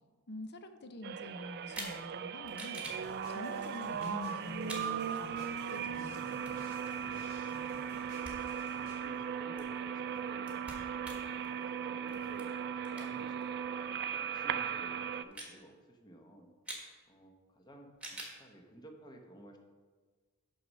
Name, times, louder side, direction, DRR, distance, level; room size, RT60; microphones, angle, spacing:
voice 1, 0.3-5.4 5.7-6.7, left 2 dB, 50° left, 8 dB, 0.7 m, -46 dB
spindle motor, 1.0-15.2, right 7 dB, 50° right, 0.3 m, -38 dB
sound 1, 1.7-2.0 2.4-3.0 3.9-4.1 4.6-4.9 6.2-7.9 8.2-8.4 8.7-13.4 13.8-13.9 14.6-14.8 15.1-15.5 16.6-16.9 17.9-18.4, right 1 dB, 5° right, 1.4 m, -47 dB
sound 2, 2.8-9.0, left 1 dB, 70° left, 2.3 m, -56 dB
voice 2, 8.8-10.6 11.4-12.5 12.7-13.5 14.1-16.5 17.1-19.6, right 1 dB, 20° left, 3 dB, 0.9 m, -55 dB
6.4 x 5.4 x 6.3 m, 1.4 s
head